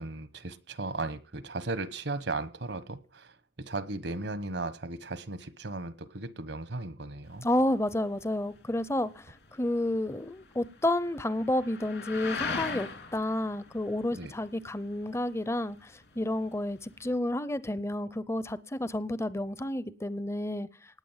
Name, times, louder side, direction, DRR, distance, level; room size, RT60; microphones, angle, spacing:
voice 1, 0.0-7.5 14.1-14.3, right 2 dB, 75° right, 1.2 m, -36 dB
sound 1, 7.2-17.2, left 4 dB, 70° left, 3.3 m, -42 dB
voice 2, 7.4-20.7, left 1 dB, 15° left, 0.6 m, -30 dB
19.0 x 8.4 x 7.3 m
head